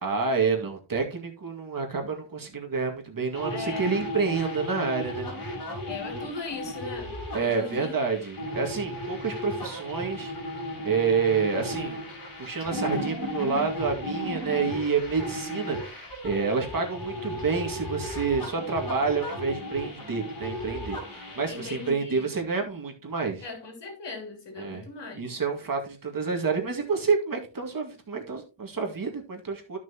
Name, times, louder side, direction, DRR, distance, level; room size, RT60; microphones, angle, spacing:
voice 1, 0.0-5.3 7.3-10.3 10.8-12.0 12.4-23.4 24.6-24.8 25.1-29.8, right 5 dB, 45° right, 2.1 m, -28 dB
sound 1, 3.3-21.9, left 1 dB, 50° left, 4.1 m, -35 dB
voice 2, 3.5-3.9 5.9-7.9 14.5-14.7 21.5-22.3 23.4-25.4, left 3 dB, 65° left, 3.3 m, -39 dB
13.5 x 6.1 x 2.9 m
wide cardioid pair, 145°, 45 cm